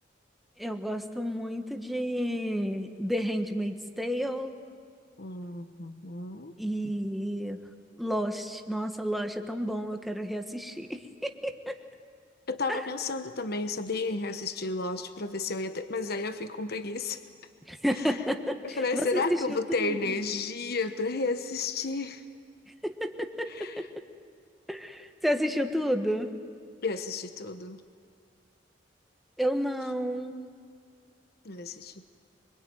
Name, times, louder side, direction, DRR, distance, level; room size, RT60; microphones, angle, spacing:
voice 1, 0.6-4.6 6.6-7.6 8.0-11.8 12.7-12.8 17.7-20.1 22.8-23.9 24.7-26.3 29.4-30.4, equal, ahead, 5 dB, 1.4 m, -31 dB
voice 2, 5.2-6.5 12.5-17.2 18.0-18.2 18.6-22.2 23.5-23.8 26.8-27.8 31.4-32.1, left 3 dB, 60° left, 9 dB, 1.1 m, -32 dB
25.0 x 24.0 x 9.2 m, 2.2 s
head